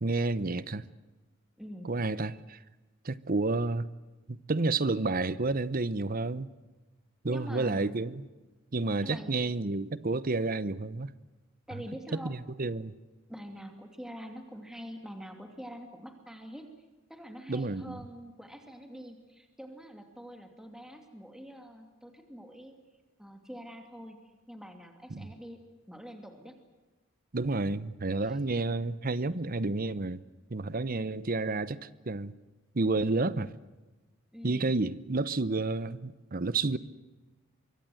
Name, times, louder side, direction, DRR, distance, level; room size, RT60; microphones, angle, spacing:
voice 1, 0.0-0.9 1.8-2.6 3.0-3.9 4.3-6.5 7.2-8.2 8.7-11.1 12.2-12.9 17.5-18.0 25.1-25.3 27.3-30.2 30.5-32.3 32.7-33.5 34.4-36.8, right 3 dB, 45° right, 0.8 m, -30 dB
voice 2, 1.6-1.9 7.2-8.0 9.0-9.4 11.7-12.4 13.3-16.7 17.1-22.7 23.2-24.2 24.5-25.6 25.9-26.6 28.2-28.4 29.3-29.4 34.3-34.8 36.7-36.8, equal, 5° right, 2.6 m, -45 dB
24.5 x 24.0 x 7.9 m
head